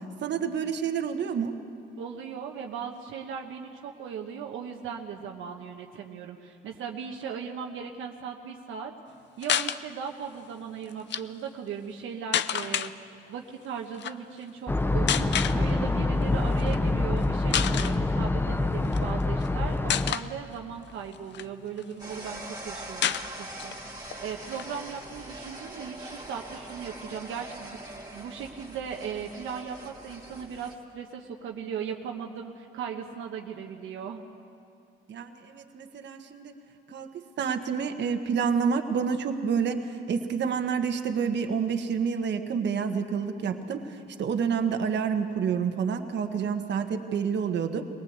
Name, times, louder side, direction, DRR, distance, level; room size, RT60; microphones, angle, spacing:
voice 1, 0.2-1.6 35.1-36.5 36.9-47.8, right 6 dB, 65° right, 6 dB, 1.5 m, -28 dB
voice 2, 2.0-8.9 9.4-12.9 13.3-23.8 24.2-34.2, right 7 dB, 80° right, 1 dB, 1.2 m, -38 dB
sound 1, 9.4-9.8 10.9-11.2 12.3-12.9 13.9-14.1 15.1-15.6 16.6-16.8 17.2-17.3 17.5-18.0 18.8-19.5 19.9-20.3 20.9-21.9 22.3-22.4 22.5-22.6 23.0-23.8 24.1-24.2 24.5-25.6, left 10 dB, 65° left, 0.6 m, -29 dB
sound 2, 14.7-20.1, left 2 dB, 10° left, 0.7 m, -26 dB
sound 3, 22.0-30.8, right 1 dB, 20° right, 2.7 m, -42 dB
21.5 x 19.0 x 8.1 m, 2.5 s
cardioid pair, 90°, 20 cm